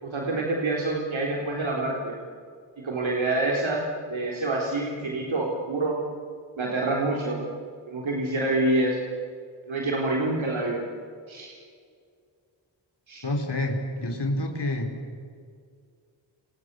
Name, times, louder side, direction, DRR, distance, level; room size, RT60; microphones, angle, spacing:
voice 1, 0.0-2.2 2.8-6.0 6.6-7.4 7.9-9.1 9.7-10.8 11.3-11.6 13.1-13.2, right 2 dB, 85° right, -2 dB, 4.0 m, -27 dB
voice 2, 13.2-14.9, left 1 dB, 60° left, 2 dB, 4.5 m, -28 dB
29.0 x 28.0 x 7.0 m, 2.2 s
cardioid pair, 50°, 46 cm